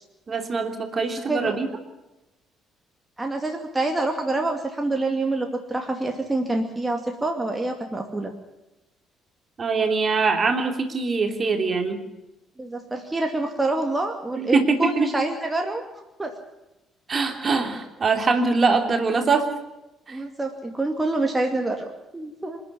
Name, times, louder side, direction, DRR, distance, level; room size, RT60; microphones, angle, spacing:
voice 1, 0.3-1.7 9.6-12.0 14.3-15.1 17.1-19.5 20.1-20.2, right 4 dB, 35° right, 5 dB, 3.1 m, -23 dB
voice 2, 3.2-8.3 12.6-15.8 16.2-16.3 20.1-22.6, right 2 dB, 15° right, 4 dB, 2.5 m, -26 dB
27.0 x 10.5 x 9.9 m, 0.97 s
figure-of-eight pair, 45°, 0 cm